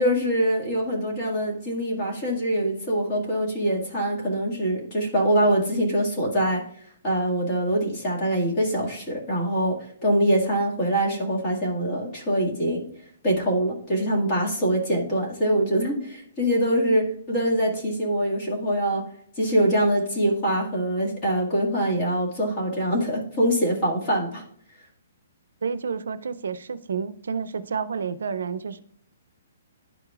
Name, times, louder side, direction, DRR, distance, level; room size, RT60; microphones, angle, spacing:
voice 1, 0.0-6.6 7.0-9.7 10.0-12.8 13.2-19.0 19.4-24.4, right 1 dB, 20° left, -3 dB, 1.8 m, -24 dB
voice 2, 25.6-28.8, right 6 dB, 80° right, 14 dB, 0.4 m, -30 dB
11.0 x 4.9 x 2.4 m, 0.63 s
hypercardioid pair, 175°, 0 cm